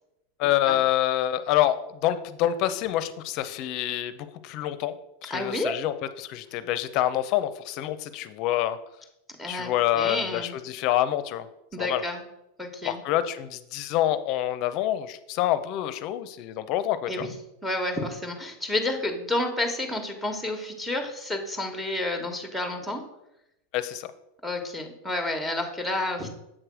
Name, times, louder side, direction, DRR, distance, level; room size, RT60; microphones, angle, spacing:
voice 1, 0.4-4.9 5.2-8.8 9.5-11.5 11.8-12.0 12.8-17.3 23.7-24.1, left 12 dB, 50° left, 12 dB, 0.6 m, -27 dB
voice 2, 5.3-5.7 9.4-9.7 9.9-10.6 11.7-12.2 12.6-13.0 17.1-17.3 17.6-23.0 24.4-26.3, left 2 dB, ahead, 4 dB, 1.2 m, -30 dB
7.5 x 3.3 x 6.1 m, 0.88 s
supercardioid pair, 120°, 0 cm